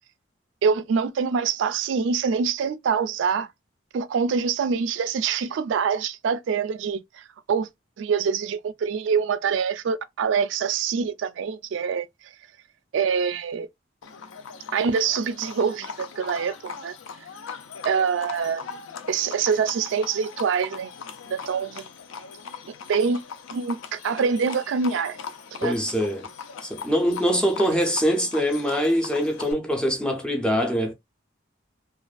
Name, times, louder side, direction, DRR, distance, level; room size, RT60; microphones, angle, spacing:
voice 1, 0.6-3.5 3.9-7.7 8.0-12.1 12.9-13.7 14.7-16.9 17.8-18.6 19.1-20.9 21.3-21.9 22.9-23.2 23.5-25.2 25.5-25.7, right 6 dB, 75° right, 0.3 m, -25 dB
Livestock farm animals working animals, 14.0-29.5, left 6 dB, 85° left, 0.4 m, -40 dB
voice 2, 25.6-26.3 26.6-30.9, equal, 5° left, 0.4 m, -23 dB
2.4 x 2.3 x 2.2 m
head